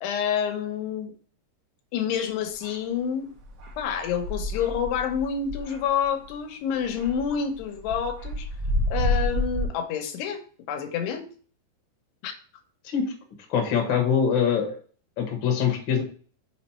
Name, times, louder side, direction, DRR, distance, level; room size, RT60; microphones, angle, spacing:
voice 1, 0.0-1.1 1.9-3.3 3.8-8.5 8.9-10.4 10.7-11.3 12.2-12.3, left 7 dB, 85° left, 5 dB, 3.1 m, -28 dB
sound 1, 2.6-2.7 3.4-6.4 6.8-9.7, left 1 dB, 65° right, 1.2 m, -29 dB
voice 2, 13.5-14.8 15.2-16.0, left 7 dB, 55° left, 2 dB, 1.3 m, -23 dB
6.6 x 4.4 x 4.3 m, 0.42 s
omnidirectional pair, 4.7 m